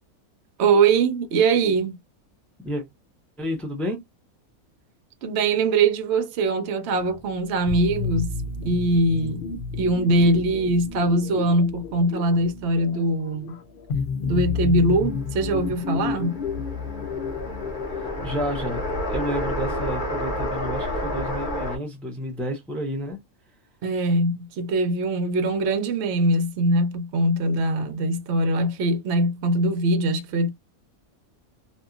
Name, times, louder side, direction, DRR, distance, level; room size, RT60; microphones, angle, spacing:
voice 1, 0.6-1.9 5.2-8.3 8.6-9.4 9.7-13.6 14.2-16.3 23.8-30.5, right 2 dB, 65° right, 0.7 m, -22 dB
voice 2, 3.4-4.0 18.2-23.2, equal, ahead, 0.4 m, -30 dB
sound 1, 6.9-19.0, left 5 dB, 55° left, 0.6 m, -31 dB
sound 2, 15.0-21.8, equal, 40° left, 1.1 m, -30 dB
2.8 x 2.3 x 2.4 m
omnidirectional pair, 1.5 m